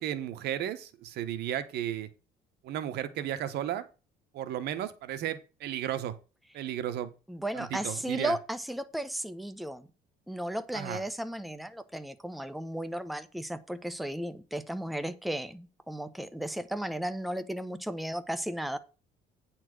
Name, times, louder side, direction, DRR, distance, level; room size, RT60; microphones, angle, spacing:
voice 1, 0.0-2.1 2.6-3.9 4.3-6.1 6.5-7.1 7.5-8.3 10.7-11.0, right 11 dB, 75° right, 1.2 m, -34 dB
voice 2, 7.3-9.9 10.3-18.8, right 1 dB, ahead, 1.0 m, -35 dB
9.6 x 4.5 x 6.1 m
cardioid pair, 110°, 17 cm